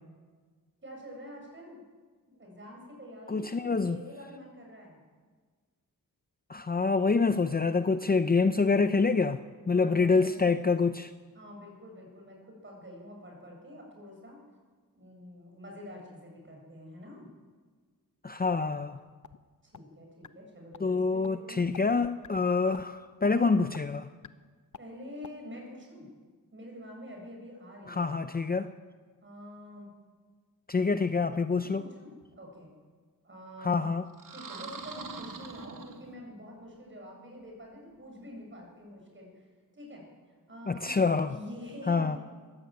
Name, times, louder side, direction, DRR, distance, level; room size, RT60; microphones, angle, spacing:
voice 1, 0.8-1.8 2.3-5.0 9.7-10.5 11.3-14.4 14.9-17.3 19.6-21.9 24.8-26.1 26.5-28.3 29.2-29.9 31.6-32.7 33.2-33.8 34.3-39.4 39.7-40.1 40.5-40.9 41.2-42.2, left 1 dB, 35° right, 0 dB, 7.7 m, -46 dB
voice 2, 3.3-4.0 6.5-9.4 9.7-11.1 18.2-19.0 20.8-24.1 27.9-28.7 30.7-31.8 33.6-34.1 40.7-41.4 41.9-42.2, left 4 dB, 25° left, 10 dB, 0.6 m, -26 dB
sound 1, 18.6-19.4 19.7-19.8 20.2-20.3 20.7-20.8 21.2-21.3 21.7-21.8 22.2-22.4 22.7-22.9 23.2-23.3 23.7-23.8 24.2-24.3 24.7-24.8 25.2-25.3, left 6 dB, 55° left, 0.9 m, -47 dB
sound 2, 34.1-36.4, right 5 dB, 65° right, 2.3 m, -43 dB
21.5 x 15.0 x 9.3 m, 1.5 s
wide cardioid pair, 130°, 35 cm